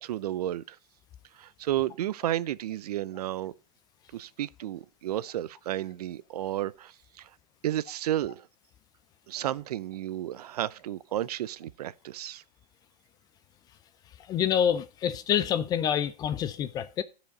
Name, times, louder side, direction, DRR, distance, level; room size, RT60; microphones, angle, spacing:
voice 1, 0.0-0.8 1.3-3.5 4.1-7.3 7.6-8.5 9.3-12.4, right 13 dB, 70° right, 0.5 m, -32 dB
voice 2, 14.3-17.0, left 9 dB, 20° left, 0.4 m, -27 dB
12.0 x 5.1 x 5.3 m
hypercardioid pair, 140°, 21 cm